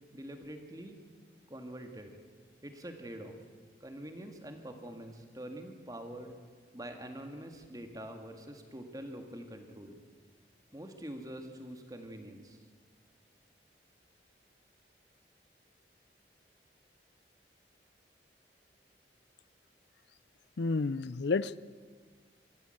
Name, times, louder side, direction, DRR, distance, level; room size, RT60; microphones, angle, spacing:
voice 1, 0.1-1.0 1.5-2.2 2.6-3.3 3.8-6.3 6.7-10.0 10.7-12.6, right 1 dB, 20° right, 5 dB, 2.0 m, -45 dB
voice 2, 20.6-21.6, left 3 dB, 75° left, 18 dB, 0.5 m, -30 dB
23.5 x 15.0 x 7.9 m, 1.5 s
head